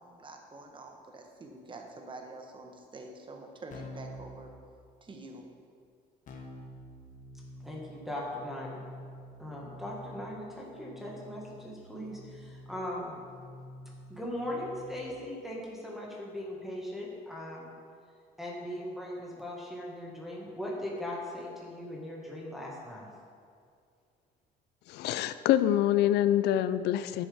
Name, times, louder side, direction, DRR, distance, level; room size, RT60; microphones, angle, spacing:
voice 1, 0.0-4.5 5.0-5.5, right 2 dB, 30° right, 3 dB, 1.1 m, -47 dB
Keyboard (musical), 3.7-4.3 6.3-15.1, left 1 dB, 50° left, 1.2 m, -48 dB
voice 2, 7.6-8.9 9.4-13.1 14.1-17.7 18.4-23.1, left 1 dB, ahead, -5 dB, 1.7 m, -39 dB
voice 3, 24.9-27.3, left 12 dB, 80° left, 13 dB, 0.4 m, -26 dB
10.5 x 7.2 x 3.5 m, 2.2 s
cardioid pair, 110°, 17 cm